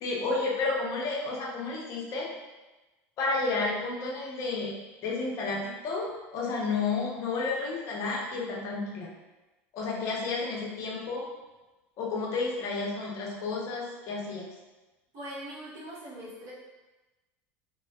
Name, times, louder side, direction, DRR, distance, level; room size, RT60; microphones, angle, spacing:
voice 1, 0.0-2.3 3.2-9.1 9.7-11.2 12.0-14.5, left 3 dB, 55° left, -3 dB, 0.7 m, -31 dB
voice 2, 15.1-16.5, right 1 dB, 45° right, -7 dB, 1.3 m, -41 dB
3.4 x 2.3 x 2.3 m, 1.1 s
supercardioid pair, 105°, 7 cm